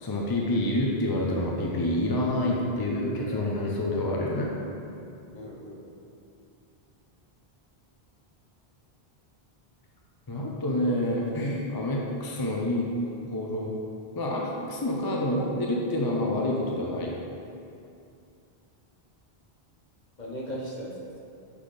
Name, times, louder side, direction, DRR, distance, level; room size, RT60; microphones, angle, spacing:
voice 1, 0.0-4.5 10.3-13.8 14.2-14.4 14.7-17.1, left 1 dB, 30° left, -2 dB, 0.4 m, -28 dB
voice 2, 3.2-3.6 5.3-5.9 20.2-21.2, equal, 45° left, -4 dB, 1.1 m, -38 dB
5.7 x 4.0 x 5.0 m, 2.6 s
omnidirectional pair, 1.1 m